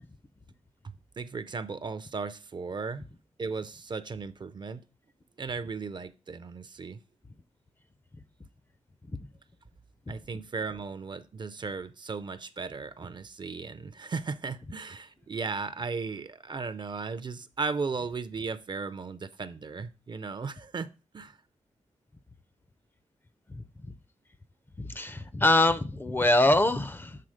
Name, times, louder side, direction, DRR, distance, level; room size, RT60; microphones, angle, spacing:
voice 1, 1.2-3.0 3.4-4.8 5.4-7.0 10.1-20.9 21.1-21.3, right 4 dB, 40° right, 0.5 m, -36 dB
voice 2, 24.8-27.2, left 2 dB, 15° left, 0.4 m, -24 dB
7.6 x 3.9 x 4.9 m
wide cardioid pair, 140°, 12 cm